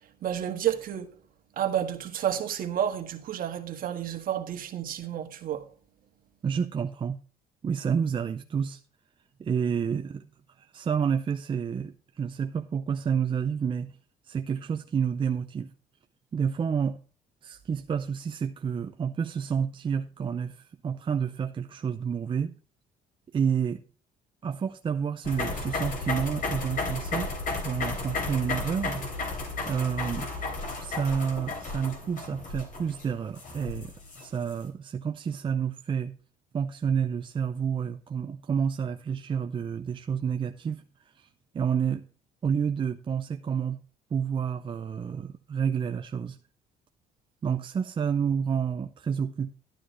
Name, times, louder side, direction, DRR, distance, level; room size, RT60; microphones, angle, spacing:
voice 1, 0.2-1.1 1.6-5.7, right 10 dB, 55° right, 1.6 m, -30 dB
voice 2, 6.4-7.2 7.6-8.8 9.4-10.3 10.6-14.0 14.2-15.7 16.3-17.0 17.4-22.6 23.3-23.8 24.4-27.3 27.6-29.1 29.7-30.3 30.8-36.1 36.5-40.8 41.2-41.3 41.5-42.0 42.4-43.8 44.1-46.4 47.4-49.5, right 7 dB, 30° right, 0.5 m, -29 dB
sound 1, 25.2-34.5, left 3 dB, 55° left, 3.3 m, -33 dB
11.5 x 9.9 x 3.1 m
cardioid pair, 110°, 17 cm